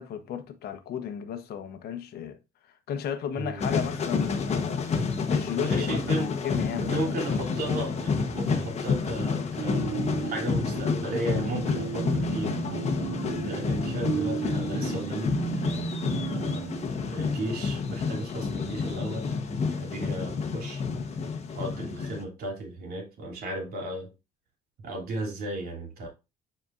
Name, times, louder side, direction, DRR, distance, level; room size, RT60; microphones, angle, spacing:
voice 1, 0.0-2.4 2.9-4.8 5.3-7.1, left 8 dB, 70° left, 1.1 m, -34 dB
voice 2, 3.3-3.7 5.5-6.4 6.7-15.9 16.2-24.1 24.8-26.1, right 2 dB, 65° right, 3.2 m, -35 dB
sound 1, 3.6-22.2, left 5 dB, 40° left, 1.2 m, -29 dB
sound 2, 9.6-16.8, right 7 dB, 85° right, 2.0 m, -34 dB
9.6 x 4.4 x 2.6 m
cardioid pair, 110°, 17 cm